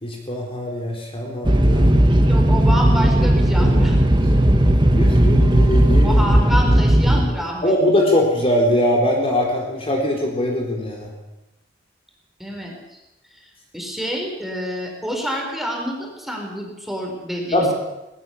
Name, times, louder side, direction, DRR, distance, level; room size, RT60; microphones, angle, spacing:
voice 1, 0.0-2.1 3.6-3.9 4.5-6.2 7.6-11.1 17.5-17.7, left 1 dB, 30° left, 0 dB, 3.9 m, -22 dB
sound 1, 1.4-7.3, right 1 dB, 25° right, 1.5 m, -15 dB
voice 2, 2.3-4.0 6.0-7.7 12.4-12.7 13.3-13.4 13.7-17.7, equal, ahead, 0 dB, 4.8 m, -27 dB
19.5 x 19.5 x 7.2 m, 0.96 s
head